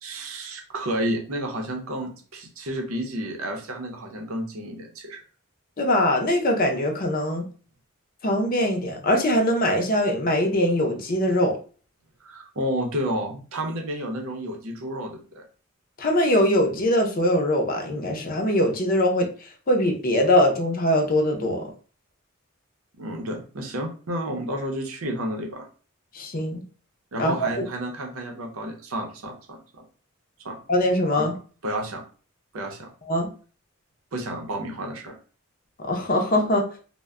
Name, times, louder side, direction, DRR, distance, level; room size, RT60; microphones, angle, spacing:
voice 1, 0.0-5.2 12.2-15.4 23.0-25.7 27.1-29.8 30.4-30.6 31.2-31.3 31.6-32.0 32.5-32.9 34.1-35.1, right 1 dB, 75° right, 2 dB, 0.7 m, -31 dB
voice 2, 5.8-7.4 8.2-11.6 16.0-21.7 26.1-26.6 27.2-27.7 30.7-31.3 33.1-33.3 35.8-36.6, left 1 dB, 40° left, 3 dB, 0.5 m, -22 dB
2.1 x 2.1 x 3.5 m, 0.38 s
head